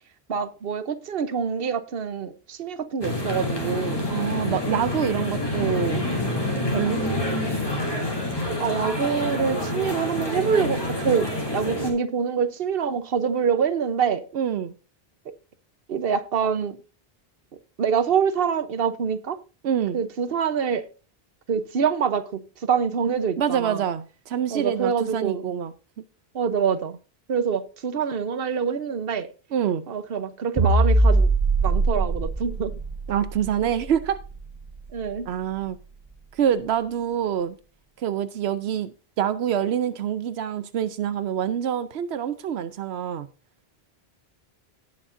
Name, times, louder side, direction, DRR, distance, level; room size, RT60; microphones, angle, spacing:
voice 1, 0.3-4.0 5.6-5.9 8.6-14.3 15.9-16.8 17.8-19.4 19.9-20.9 21.5-23.8 24.5-25.5 26.3-27.0 27.3-29.3 29.9-31.3 31.6-32.7 34.9-35.3, right 6 dB, 65° right, 1.1 m, -25 dB
sound 1, 3.0-11.9, left 1 dB, 25° left, 2.8 m, -27 dB
voice 2, 4.1-6.0 6.7-7.0 14.3-14.7 19.6-20.0 23.4-25.7 29.5-29.8 33.1-34.2 35.3-35.8 36.3-37.6 38.0-43.3, right 9 dB, 90° right, 0.9 m, -26 dB
sound 2, 30.6-35.1, right 2 dB, 25° right, 0.7 m, -22 dB
18.0 x 6.4 x 2.6 m
omnidirectional pair, 1.0 m